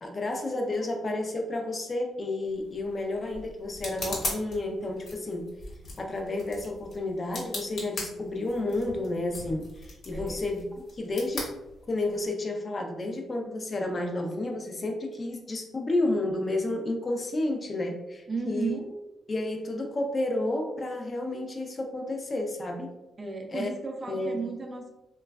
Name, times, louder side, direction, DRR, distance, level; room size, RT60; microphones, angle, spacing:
voice 1, 0.0-5.5 6.0-10.7 10.9-11.5 11.9-18.8 19.3-22.9 23.5-23.7 24.1-24.4, left 2 dB, 35° left, 3 dB, 0.5 m, -31 dB
sound 1, 2.4-12.3, left 2 dB, 65° left, 1.0 m, -40 dB
voice 2, 10.1-10.4 18.3-18.9 23.2-24.9, right 4 dB, 30° right, 2 dB, 0.5 m, -34 dB
3.1 x 2.3 x 2.3 m, 0.97 s
cardioid pair, 95°, 0 cm